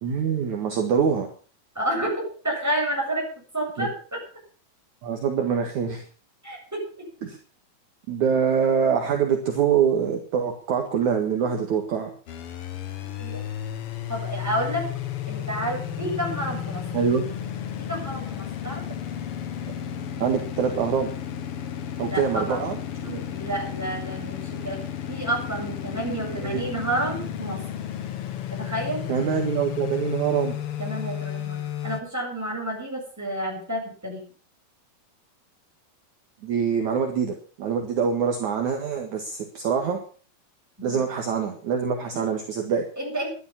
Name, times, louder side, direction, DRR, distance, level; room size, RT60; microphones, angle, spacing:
voice 1, 0.0-1.3 3.8-3.9 5.0-6.0 7.2-7.4 8.1-12.1 16.9-17.2 20.2-21.1 22.0-22.8 23.0-23.2 26.1-26.6 29.1-30.6 36.4-40.0 40.8-42.8, right 7 dB, 55° right, 3 dB, 2.9 m, -24 dB
voice 2, 1.7-3.3 3.5-4.2 6.4-7.1 13.2-13.4 14.1-14.9 15.3-16.8 17.8-18.8 22.0-22.7 23.3-24.8 25.1-27.6 28.5-29.0 30.8-34.2 40.8-41.0 42.1-42.2 43.0-43.3, right 1 dB, 5° right, -1 dB, 7.3 m, -30 dB
sound 1, 12.3-32.0, left 9 dB, 70° left, 1.3 m, -33 dB
12.5 x 12.0 x 7.2 m, 0.40 s
omnidirectional pair, 4.4 m